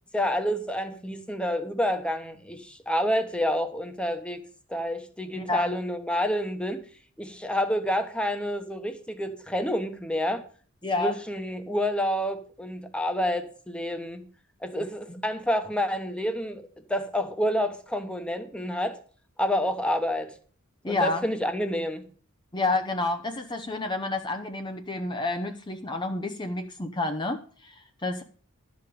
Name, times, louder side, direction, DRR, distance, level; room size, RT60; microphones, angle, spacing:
voice 1, 0.1-4.4 4.7-6.8 7.2-10.4 11.0-14.2 14.6-16.6 16.9-19.0 19.4-20.3 20.8-22.0, equal, 5° left, 7 dB, 1.1 m, -28 dB
voice 2, 5.4-5.7 10.8-11.1 20.8-21.2 22.5-28.2, left 2 dB, 20° left, 6 dB, 0.7 m, -29 dB
12.0 x 5.2 x 8.6 m, 0.43 s
head